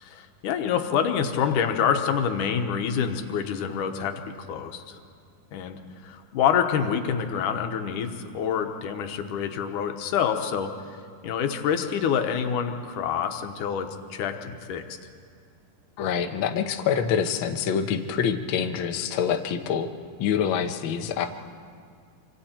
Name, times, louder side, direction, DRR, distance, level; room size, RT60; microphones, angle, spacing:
voice 1, 0.0-5.0 5.5-11.0 11.2-14.8, left 7 dB, 85° left, 6 dB, 2.6 m, -27 dB
voice 2, 16.0-19.9 20.2-21.3, left 7 dB, 70° left, 5 dB, 1.2 m, -26 dB
25.5 x 25.5 x 4.4 m, 2.2 s
omnidirectional pair, 3.6 m